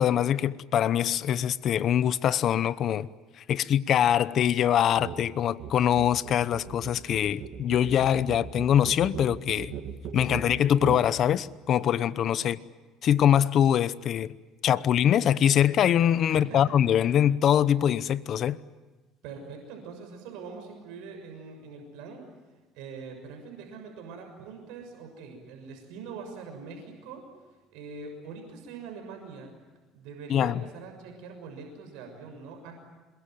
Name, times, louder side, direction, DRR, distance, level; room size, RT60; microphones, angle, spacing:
voice 1, 0.0-3.1 3.4-9.7 10.1-12.6 13.0-14.3 14.6-18.6 30.3-30.6, left 10 dB, 50° left, 0.9 m, -23 dB
sound 1, 5.0-5.2 5.5-11.1, right 8 dB, 60° right, 2.2 m, -38 dB
voice 2, 16.3-16.6 19.2-22.2 22.7-27.3 27.7-29.5 29.9-32.8, right 5 dB, 80° right, 6.5 m, -43 dB
27.5 x 22.5 x 9.4 m
cardioid pair, 125°, 0 cm